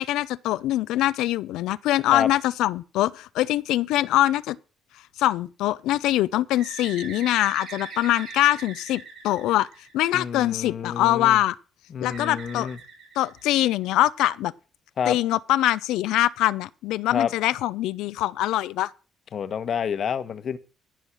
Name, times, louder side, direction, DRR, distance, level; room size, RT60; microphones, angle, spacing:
voice 1, 0.0-4.6 5.2-9.7 9.9-11.5 12.0-12.7 13.2-14.5 15.1-18.9, left 15 dB, 80° left, 0.6 m, -23 dB
Bird, 6.6-10.3 12.1-13.8, right 4 dB, 70° right, 7.0 m, -41 dB
voice 2, 10.1-11.4 11.9-12.8 15.0-15.2 17.1-17.3 19.3-20.6, left 7 dB, 55° left, 1.2 m, -28 dB
15.5 x 5.5 x 6.1 m
supercardioid pair, 70°, 0 cm